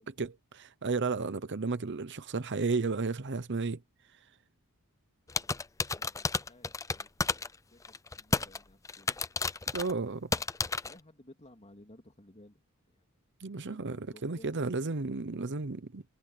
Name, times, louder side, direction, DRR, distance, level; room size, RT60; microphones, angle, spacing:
voice 1, 0.0-3.8 9.7-10.3 13.4-16.0, right 4 dB, 55° right, 0.8 m, -33 dB
sound 1, 5.3-7.6 7.9-8.6 8.9-9.9 10.3-10.9, left 4 dB, 15° left, 0.4 m, -31 dB
voice 2, 5.9-7.4 7.7-9.1 10.8-12.6 12.9-13.0 13.6-14.8, left 1 dB, 30° left, 3.0 m, -57 dB
head